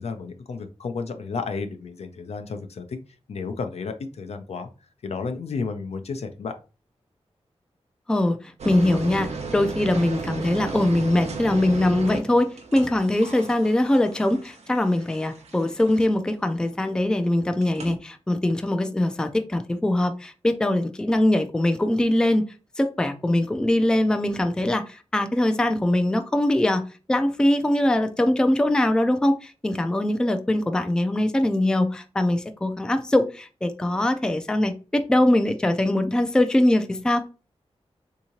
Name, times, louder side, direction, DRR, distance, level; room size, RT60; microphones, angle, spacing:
voice 1, 0.0-3.0 3.3-4.7 5.0-6.5, left 4 dB, 75° left, 7 dB, 0.5 m, -32 dB
voice 2, 8.1-22.4 22.8-37.3, left 1 dB, 5° left, 7 dB, 0.3 m, -22 dB
sound 1, 8.6-16.3 17.6-18.0, right 4 dB, 85° right, 0.7 m, -35 dB
3.6 x 2.8 x 2.8 m, 0.33 s
wide cardioid pair, 145°, 11 cm